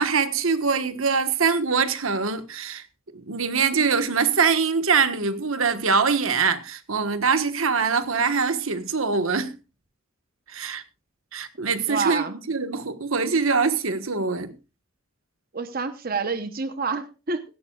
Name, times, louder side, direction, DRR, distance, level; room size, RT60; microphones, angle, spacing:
voice 1, 0.0-2.8 3.1-9.5 10.5-10.8 11.3-14.5, right 5 dB, 85° right, 1.4 m, -23 dB
voice 2, 11.9-12.4 15.5-17.4, right 4 dB, 45° right, 1.0 m, -28 dB
17.0 x 15.5 x 2.4 m
head